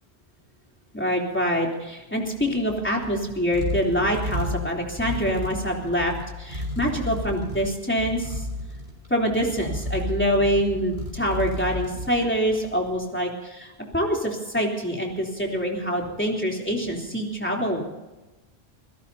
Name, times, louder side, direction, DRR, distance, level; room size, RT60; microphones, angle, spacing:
voice 1, 0.9-6.1 6.4-8.4 9.1-17.8, equal, 10° left, -1 dB, 3.4 m, -25 dB
sound 1, 2.2-12.8, left 1 dB, 65° right, 5.2 m, -33 dB
28.0 x 17.0 x 2.8 m, 1.1 s
omnidirectional pair, 1.1 m